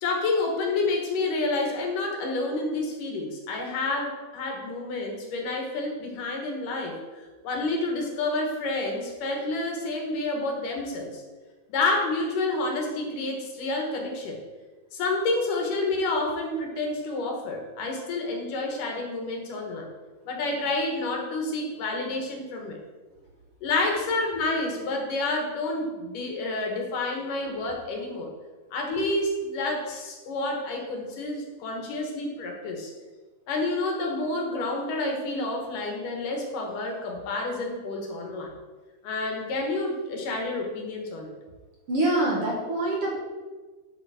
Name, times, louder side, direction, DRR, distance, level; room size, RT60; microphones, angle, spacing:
voice 1, 0.0-11.2 11.7-14.4 14.9-19.9 20.2-22.8 23.6-28.3 28.7-32.9 33.5-38.5 39.0-41.3, left 2 dB, 70° left, 1 dB, 3.1 m, -29 dB
voice 2, 41.9-43.1, right 1 dB, 50° right, -3 dB, 2.2 m, -25 dB
12.0 x 7.2 x 4.4 m, 1.3 s
omnidirectional pair, 4.0 m